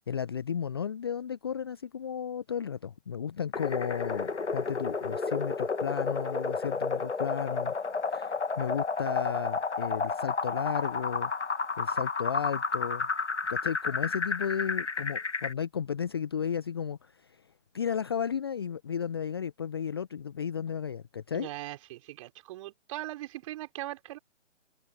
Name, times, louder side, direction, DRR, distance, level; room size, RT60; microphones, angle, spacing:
voice 1, 0.1-7.7 8.0-11.3 11.8-13.1 13.5-17.4 17.7-21.5, left 7 dB, 20° left, 0.6 m, -34 dB
sound 1, 3.5-15.5, left 4 dB, 70° left, 1.7 m, -31 dB
voice 2, 21.3-24.2, right 16 dB, 25° right, 3.9 m, -40 dB
figure-of-eight pair, 140°, 37 cm